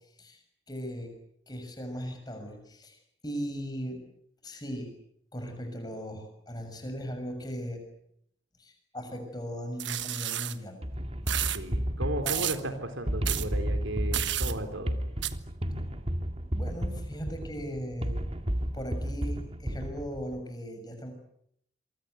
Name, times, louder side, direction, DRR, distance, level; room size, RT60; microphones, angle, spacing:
voice 1, 0.7-1.1 1.5-4.0 4.4-5.0 5.3-7.8 8.6-10.8 12.2-12.5 16.5-18.2 18.7-21.1, equal, 20° left, 6 dB, 6.7 m, -38 dB
sound 1, 9.8-10.5 11.3-11.6 12.3-12.6 13.2-13.5 14.1-14.5 15.2-15.3, right 12 dB, 65° right, 1.4 m, -31 dB
sound 2, 10.8-20.4, equal, 30° right, 1.9 m, -32 dB
voice 2, 11.5-15.0, right 1 dB, 80° right, 7 dB, 3.8 m, -35 dB
28.0 x 24.0 x 8.1 m, 0.72 s
head